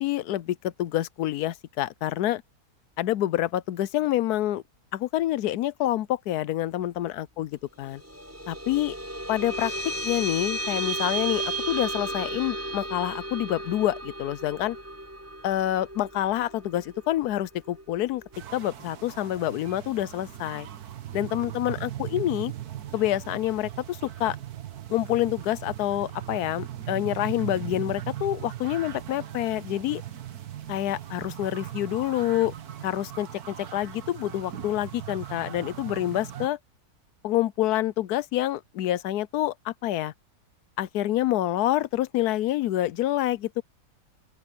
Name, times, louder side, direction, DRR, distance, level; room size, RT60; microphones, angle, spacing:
voice 1, 0.0-2.4 3.0-4.6 4.9-8.0 8.5-9.0 9.3-14.8 15.4-18.2 18.5-20.7 21.1-22.5 22.9-24.4 24.9-30.0 30.7-32.5 32.8-36.6 37.2-40.1 40.8-43.6, left 13 dB, 75° left, 1.2 m, -27 dB
sound 1, 7.8-18.6, right 2 dB, 10° right, 5.9 m, -34 dB
sound 2, 18.3-36.5, right 12 dB, 70° right, 1.6 m, -39 dB
open air
omnidirectional pair, 1.7 m